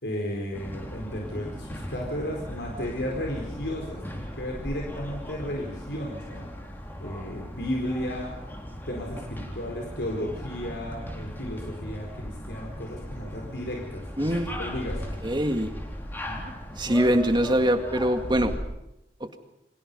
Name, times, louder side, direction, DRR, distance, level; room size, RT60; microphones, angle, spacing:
voice 1, 0.0-6.5 7.0-8.3 8.9-14.3 14.6-15.2 16.3-16.5 16.9-17.0, equal, 75° left, 0 dB, 4.5 m, -34 dB
sound 1, 0.5-18.6, equal, 10° left, 3.9 m, -38 dB
voice 2, 14.2-14.5 15.2-15.7 16.8-18.6 19.2-19.4, equal, 25° right, 6 dB, 2.0 m, -23 dB
29.5 x 25.0 x 5.5 m, 0.86 s
head